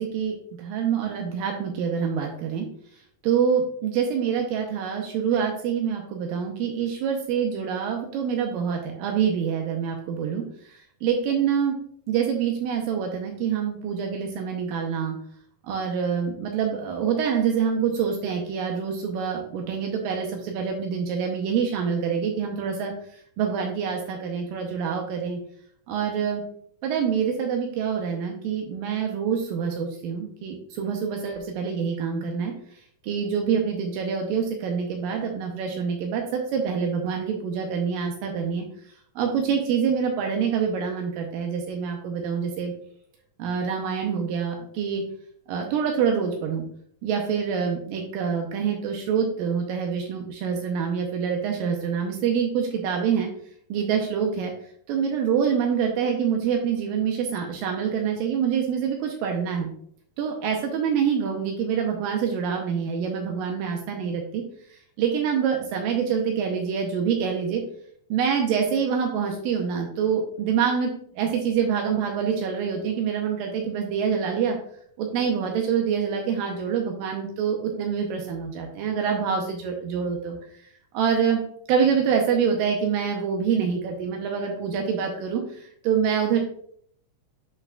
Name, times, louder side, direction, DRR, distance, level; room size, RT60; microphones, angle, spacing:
voice 1, 0.0-2.7 3.2-11.8 12.1-15.2 15.6-25.4 25.9-26.4 26.8-32.5 33.0-42.7 43.4-45.0 45.5-46.7 47.0-53.3 53.7-54.5 54.9-59.7 60.2-64.4 64.7-67.6 68.1-74.6 75.0-80.6 80.9-81.4 81.7-86.4, right 7 dB, 85° right, 2 dB, 2.4 m, -26 dB
8.3 x 5.6 x 2.3 m, 0.63 s
omnidirectional pair, 4.1 m